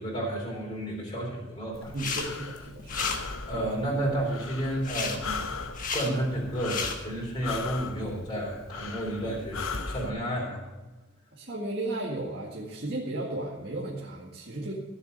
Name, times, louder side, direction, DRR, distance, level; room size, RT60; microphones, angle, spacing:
voice 1, 0.0-2.0 3.5-5.5 5.9-10.6, right 1 dB, 20° left, -3 dB, 3.8 m, -31 dB
Breathing, 1.7-10.1, left 4 dB, 80° left, 1.0 m, -38 dB
sound 1, 1.9-2.3 2.6-3.2 4.8-5.2 5.7-6.1 6.5-6.9, left 5 dB, 40° left, 1.5 m, -32 dB
voice 2, 1.9-3.0 3.5-3.6 11.3-14.8, right 2 dB, 50° right, -5 dB, 2.0 m, -34 dB
16.0 x 7.0 x 6.8 m, 1.2 s
head